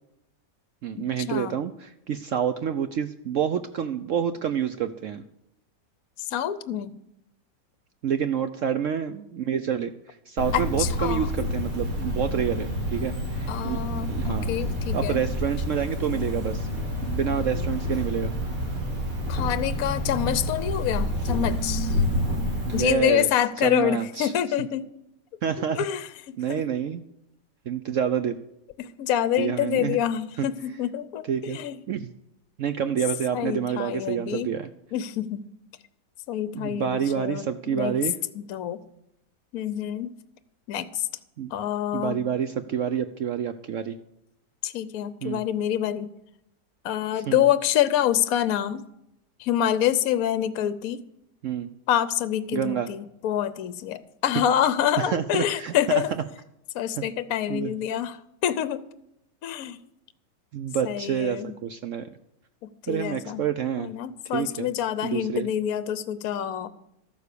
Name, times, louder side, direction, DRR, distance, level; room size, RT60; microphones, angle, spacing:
voice 1, 0.8-5.2 8.0-9.9 10.3-13.8 14.1-14.5 14.9-16.7 17.0-18.3 22.6-23.3 23.6-24.3 25.4-25.8 26.4-27.0 27.7-28.4 29.4-30.0 30.4-30.5 31.3-31.6 31.9-32.1 32.6-34.7 36.5-38.2 41.4-41.5 41.9-43.9 45.2-45.4 47.2-47.5 51.4-51.7 52.5-52.9 55.0-56.0 57.0-57.1 57.5-57.7 60.5-62.1 62.9-63.9 64.3-64.7 65.0-65.5, right 8 dB, 70° right, 10 dB, 0.8 m, -28 dB
voice 2, 6.2-6.9 10.5-11.3 13.5-15.2 19.3-22.0 22.7-24.8 25.7-26.6 28.8-31.8 33.3-34.5 34.9-35.5 36.3-37.9 38.3-38.8 39.5-40.1 40.7-41.1 41.5-42.2 44.6-46.1 46.8-48.8 49.4-51.0 51.9-56.1 56.7-58.8 59.4-59.8 60.8-61.5 62.9-63.4 63.8-66.7, left 10 dB, 65° left, 14 dB, 1.0 m, -26 dB
Cricket, 10.4-22.8, left 1 dB, 50° right, 3.3 m, -28 dB
13.0 x 9.4 x 6.8 m, 0.80 s
omnidirectional pair, 1.9 m